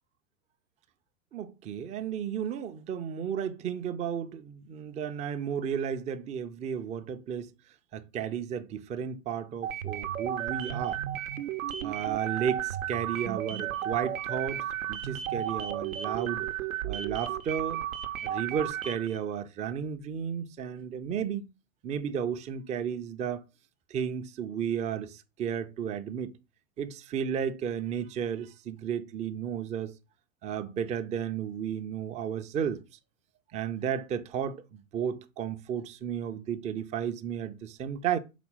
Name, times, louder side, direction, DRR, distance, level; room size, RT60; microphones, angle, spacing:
voice 1, 1.3-7.5 7.9-11.0 11.8-16.5 16.8-17.8 18.2-21.5 21.8-23.4 23.9-26.3 26.8-29.9 30.4-32.8 33.5-34.6 34.9-38.2, right 8 dB, 15° right, 0.5 m, -33 dB
sound 1, 9.6-19.2, right 11 dB, 75° right, 0.8 m, -33 dB
5.0 x 4.2 x 5.5 m
hypercardioid pair, 100°, 42 cm